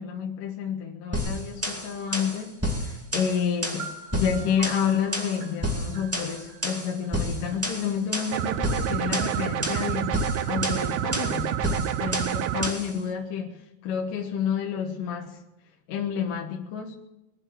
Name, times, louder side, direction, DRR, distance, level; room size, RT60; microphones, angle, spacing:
voice 1, 0.0-11.5 12.0-15.4 15.9-16.9, left 7 dB, 65° left, 1 dB, 2.8 m, -30 dB
sound 1, 1.1-13.0, equal, 10° right, 0.8 m, -31 dB
sound 2, 3.8-7.6, right 4 dB, 50° right, 1.8 m, -44 dB
sound 3, 8.3-12.7, right 11 dB, 80° right, 2.7 m, -28 dB
23.0 x 7.7 x 7.5 m, 0.91 s
omnidirectional pair, 4.4 m